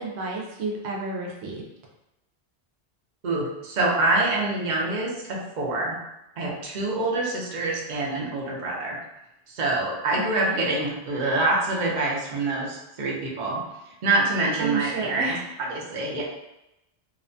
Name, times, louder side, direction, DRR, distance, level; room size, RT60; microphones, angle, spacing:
voice 1, 0.0-1.6 10.1-10.6 14.6-15.4, right 3 dB, 85° right, -2 dB, 0.9 m, -31 dB
voice 2, 3.2-6.0 6.4-9.0 9.5-16.2, right 2 dB, 50° right, -3 dB, 0.7 m, -26 dB
2.7 x 2.1 x 2.5 m, 0.90 s
omnidirectional pair, 1.1 m